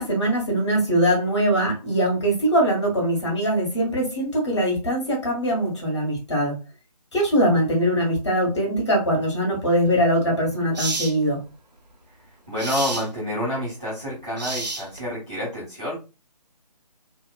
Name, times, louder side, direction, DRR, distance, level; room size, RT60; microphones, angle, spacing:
voice 1, 0.0-6.6 7.1-11.4, equal, 45° left, -1 dB, 1.1 m, -22 dB
sound 1, 9.9-10.0 10.7-11.1 12.6-13.1 14.4-15.1, right 2 dB, 85° right, 0.7 m, -29 dB
voice 2, 12.5-16.0, left 1 dB, 10° right, -10 dB, 0.4 m, -28 dB
2.8 x 2.1 x 2.3 m, 0.30 s
figure-of-eight pair, 150°, 21 cm